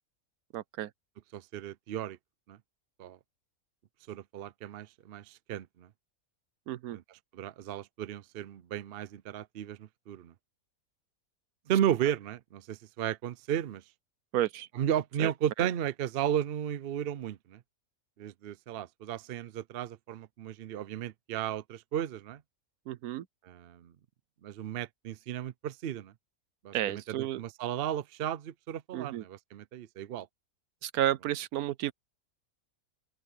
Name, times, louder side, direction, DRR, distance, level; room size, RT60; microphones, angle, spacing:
voice 1, 0.5-0.9 6.7-7.0 14.3-14.7 15.2-15.3 22.9-23.3 26.7-27.4 28.9-29.2 30.8-31.9, right 13 dB, 75° right, 1.1 m, -31 dB
voice 2, 1.3-2.2 2.5-2.6 3.0-3.2 4.1-5.9 6.9-10.3 11.7-13.8 14.7-17.6 18.2-22.4 23.4-23.9 24.4-26.1 26.6-30.3, right 10 dB, 60° right, 0.6 m, -34 dB
open air
omnidirectional pair, 1.6 m